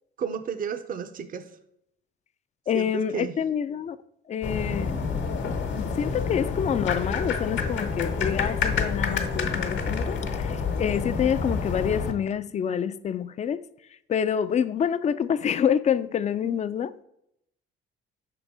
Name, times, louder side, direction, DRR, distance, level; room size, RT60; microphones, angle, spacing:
voice 1, 0.2-1.5 2.7-3.4 16.4-16.6, right 6 dB, 40° right, 0.6 m, -33 dB
voice 2, 2.7-4.0 4.3-5.0 5.4-13.6 14.1-17.0, left 8 dB, 35° left, 0.3 m, -27 dB
sound 1, 4.4-12.1, left 5 dB, 65° left, 1.1 m, -28 dB
5.4 x 3.9 x 4.7 m
cardioid pair, 100°, 21 cm